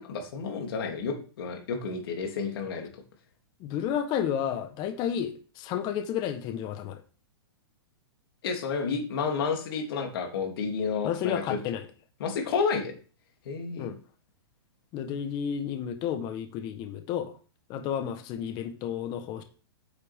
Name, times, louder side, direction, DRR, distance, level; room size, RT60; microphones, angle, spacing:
voice 1, 0.0-2.9 8.4-11.6 12.2-12.9 13.5-13.9, left 5 dB, 65° left, 3.0 m, -30 dB
voice 2, 3.6-7.0 11.0-11.9 13.8-14.0 14.9-17.3 17.7-19.4, left 9 dB, 30° left, 1.3 m, -31 dB
9.0 x 7.9 x 3.7 m
hypercardioid pair, 140°, 13 cm